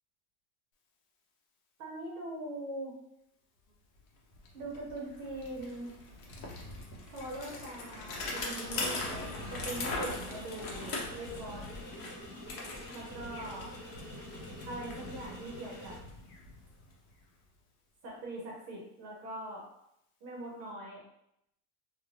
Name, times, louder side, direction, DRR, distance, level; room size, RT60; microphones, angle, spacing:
voice 1, 1.8-2.9 4.5-5.9 7.1-11.6 12.9-13.7 14.7-15.9 18.0-19.6 20.2-21.0, right 1 dB, 35° right, -2 dB, 0.5 m, -42 dB
Bicycle, 4.0-4.1 4.3-17.2, left 2 dB, 70° left, 0.8 m, -41 dB
sound 1, 8.1-16.0, equal, 25° left, 1.1 m, -48 dB
2.4 x 2.1 x 3.1 m, 0.80 s
supercardioid pair, 170°, 46 cm